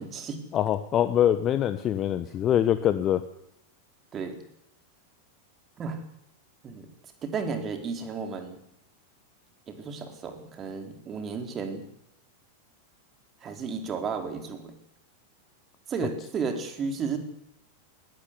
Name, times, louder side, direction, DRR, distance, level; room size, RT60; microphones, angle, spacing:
voice 1, 0.0-0.4 4.1-4.4 5.8-6.0 6.6-6.9 7.2-8.6 9.7-11.8 13.4-14.7 15.9-17.2, right 5 dB, 25° right, 6 dB, 4.4 m, -33 dB
voice 2, 0.5-3.2, left 10 dB, 30° left, 12 dB, 1.0 m, -24 dB
20.5 x 17.0 x 9.8 m, 0.77 s
figure-of-eight pair, 90°, 0 cm